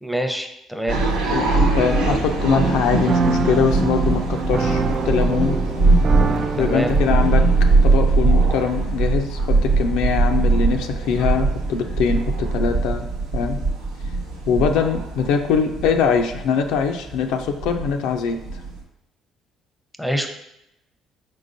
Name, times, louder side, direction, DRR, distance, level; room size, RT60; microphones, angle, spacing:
voice 1, 0.0-1.0 6.6-6.9 20.0-20.3, equal, ahead, 5 dB, 0.7 m, -25 dB
sound 1, 0.9-18.8, right 3 dB, 90° right, 0.8 m, -21 dB
voice 2, 1.3-5.6 6.6-7.5 7.8-13.1 13.3-13.6 14.5-18.4, left 6 dB, 75° left, 5 dB, 0.3 m, -22 dB
sound 2, 2.4-8.1, right 5 dB, 45° right, 0.4 m, -26 dB
4.7 x 3.7 x 2.6 m, 0.85 s
hypercardioid pair, 60°, 0 cm